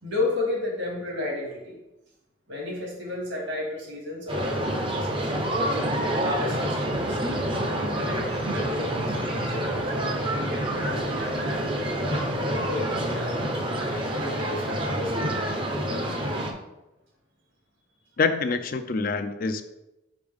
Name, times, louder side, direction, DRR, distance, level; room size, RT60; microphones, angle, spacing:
voice 1, 0.0-1.8 2.5-5.6 6.2-7.2 7.8-8.2 8.5-13.5 14.1-16.3, left 2 dB, 70° right, -2 dB, 2.1 m, -33 dB
sound 1, 4.3-16.5, right 1 dB, 25° right, 0.6 m, -27 dB
voice 2, 18.2-19.6, left 4 dB, 45° left, 9 dB, 0.4 m, -26 dB
6.0 x 5.1 x 3.5 m, 0.96 s
head